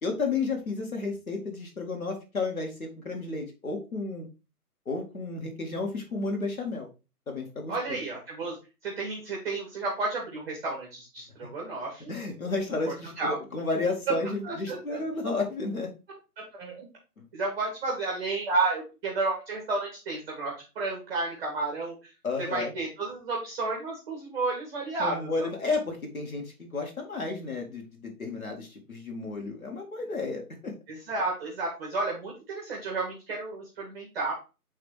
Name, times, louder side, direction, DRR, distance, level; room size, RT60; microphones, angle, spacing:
voice 1, 0.0-4.3 4.9-6.9 7.3-8.0 12.1-15.9 22.2-22.7 25.0-30.7, left 3 dB, 65° left, 2 dB, 2.5 m, -32 dB
voice 2, 7.7-8.6 8.8-12.1 12.9-13.4 14.1-14.2 14.4-15.0 16.4-16.9 17.3-22.1 22.4-25.5 30.9-34.3, right 3 dB, 5° right, -2 dB, 1.1 m, -32 dB
8.6 x 3.5 x 3.4 m, 0.29 s
figure-of-eight pair, 150°, 46 cm